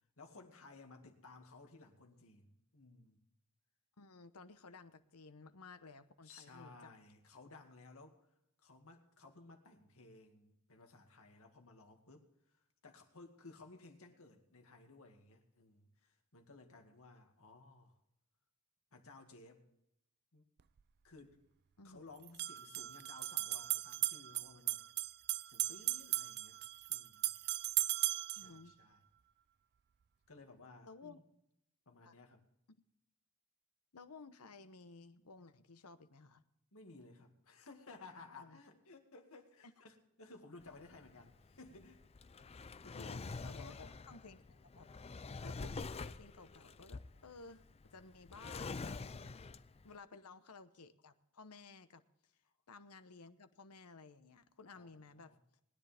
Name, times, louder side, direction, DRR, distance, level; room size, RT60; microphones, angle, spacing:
voice 1, 0.2-3.2 6.2-8.2 8.6-18.0 18.9-19.6 20.3-20.4 21.0-21.4 21.8-24.8 25.4-26.6 26.9-27.4 28.3-29.0 30.3-31.2 31.9-32.4 36.7-42.0 42.8-43.2 43.5-43.8 54.7-55.4, left 3 dB, 65° left, 4 dB, 2.2 m, -58 dB
voice 2, 4.0-6.9 21.8-22.0 28.4-28.7 30.8-31.2 32.1-32.2 33.9-36.4 38.4-38.6 42.9-44.9 45.4-47.6 47.9-49.4 49.8-52.0 52.7-55.3, left 4 dB, 90° left, 11 dB, 1.0 m, -56 dB
sound 1, 20.6-20.7 22.2-28.5, right 16 dB, 50° right, 0.4 m, -37 dB
Drawer open or close, 40.6-49.9, left 4 dB, 25° left, 0.5 m, -47 dB
20.5 x 10.0 x 3.5 m, 0.80 s
head